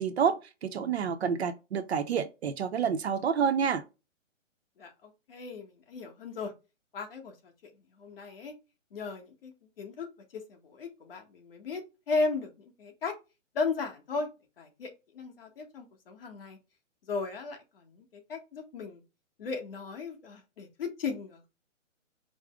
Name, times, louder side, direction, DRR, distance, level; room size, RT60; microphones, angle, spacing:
voice 1, 0.0-3.8, right 7 dB, 55° right, 0.7 m, -28 dB
voice 2, 4.8-6.5 6.9-7.7 8.0-8.5 8.9-9.5 9.8-10.1 10.3-11.8 12.1-13.1 13.5-14.3 14.6-16.6 17.1-19.0 19.4-21.5, left 4 dB, 45° left, 1.2 m, -36 dB
5.0 x 2.1 x 3.4 m
hypercardioid pair, 160°, 38 cm